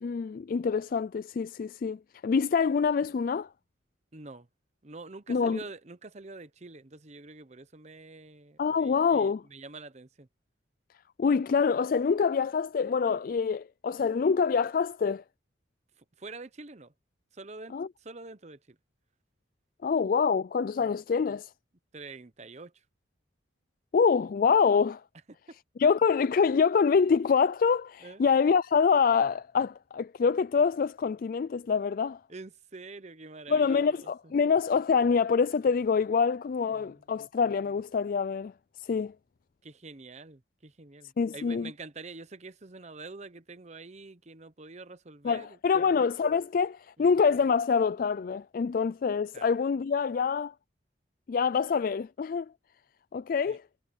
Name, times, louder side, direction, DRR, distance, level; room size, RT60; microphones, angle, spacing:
voice 1, 0.0-3.5 5.3-5.6 8.6-9.4 11.2-15.2 17.7-17.9 19.8-21.5 23.9-25.0 25.8-32.2 33.5-38.5 38.8-39.1 41.2-41.7 45.2-50.5 51.3-52.5 53.1-53.6, left 5 dB, 50° left, 0.3 m, -26 dB
voice 2, 4.1-4.5 4.8-10.3 16.0-16.9 17.3-18.8 20.8-20.9 21.9-22.7 25.3-25.6 28.0-28.2 32.3-34.1 36.7-37.0 39.6-46.0 47.0-47.1 49.3-49.5 53.5-53.6, right 3 dB, 40° right, 0.9 m, -46 dB
head